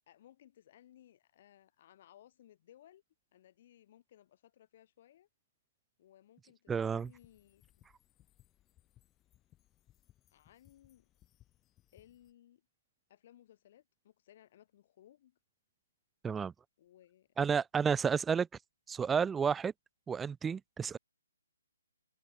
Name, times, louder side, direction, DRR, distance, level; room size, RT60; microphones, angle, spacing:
voice 1, 0.1-3.0 3.3-5.3 6.0-7.6 10.3-11.1 11.9-12.6 13.1-15.4 16.8-17.3, left 12 dB, 40° left, 3.3 m, -61 dB
voice 2, 6.7-7.1 16.2-16.5 17.4-18.5 18.9-19.7 20.1-21.0, right 6 dB, 10° right, 0.3 m, -31 dB
sound 1, 7.0-12.3, left 13 dB, 15° left, 2.7 m, -67 dB
figure-of-eight pair, 140°, 0 cm